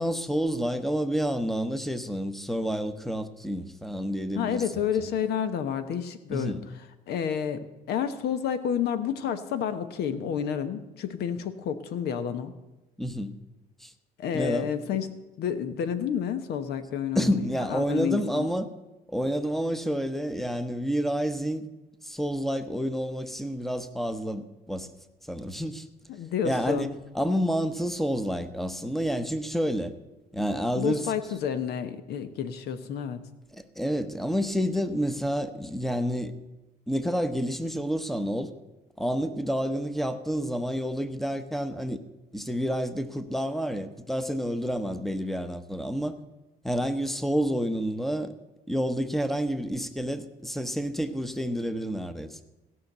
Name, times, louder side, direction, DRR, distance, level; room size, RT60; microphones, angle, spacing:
voice 1, 0.0-4.7 5.0-5.1 6.3-6.6 13.0-13.3 13.8-13.9 14.3-14.7 17.1-18.7 19.1-21.7 22.0-24.9 25.3-25.9 26.4-29.9 30.3-31.4 33.5-36.3 36.9-38.5 39.0-42.0 42.3-46.2 46.6-48.3 48.7-52.4, equal, ahead, 11 dB, 0.9 m, -29 dB
voice 2, 4.3-6.6 7.1-12.5 14.2-15.1 15.4-18.5 26.1-26.9 30.7-33.2, left 8 dB, 75° left, 11 dB, 1.1 m, -30 dB
16.0 x 5.8 x 7.9 m, 1.0 s
cardioid pair, 110°, 17 cm